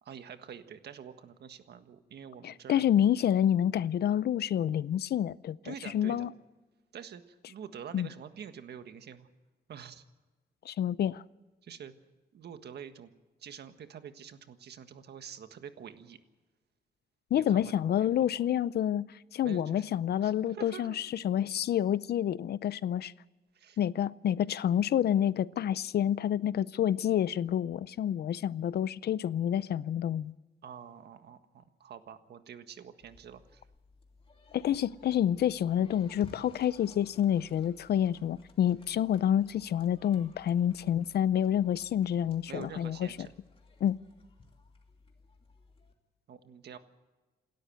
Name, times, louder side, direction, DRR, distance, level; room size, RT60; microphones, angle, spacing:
voice 1, 0.0-2.8 5.6-6.3 6.9-9.3 9.7-10.0 11.6-11.9 12.3-13.1 13.4-16.2 17.3-18.3 19.4-19.8 20.2-21.0 23.5-23.8 30.6-33.6 42.5-43.3 46.3-46.8, right 8 dB, 90° right, 1.6 m, -46 dB
voice 2, 2.4-6.3 7.9-8.1 10.7-11.2 17.3-23.1 23.8-30.3 34.5-43.1 43.8-44.0, left 10 dB, 80° left, 0.6 m, -28 dB
sound 1, 33.0-45.9, left 3 dB, 35° left, 2.6 m, -58 dB
28.0 x 13.0 x 7.8 m
wide cardioid pair, 175°, 17 cm